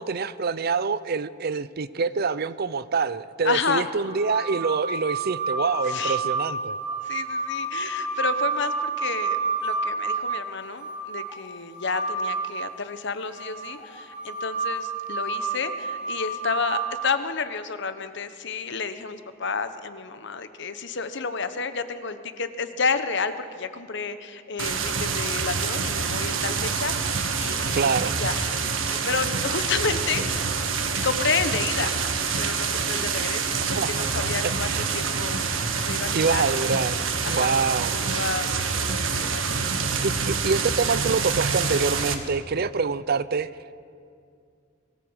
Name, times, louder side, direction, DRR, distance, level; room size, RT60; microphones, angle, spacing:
voice 1, 0.0-6.8 27.7-28.1 33.7-34.8 36.1-37.0 37.2-37.9 40.0-43.5, right 4 dB, 50° right, 16 dB, 0.6 m, -26 dB
voice 2, 3.4-3.8 5.8-6.2 7.0-28.5 28.9-30.4 31.0-32.0 32.4-35.5 35.8-36.7 37.2-37.6 37.9-38.5 38.8-40.1, left 5 dB, 65° left, 11 dB, 1.1 m, -31 dB
sound 1, 4.0-12.5 13.3-16.8, right 4 dB, 5° right, 4.0 m, -29 dB
sound 2, 24.6-42.1, right 5 dB, 80° right, 1.6 m, -26 dB
22.5 x 14.5 x 8.0 m, 2.3 s
head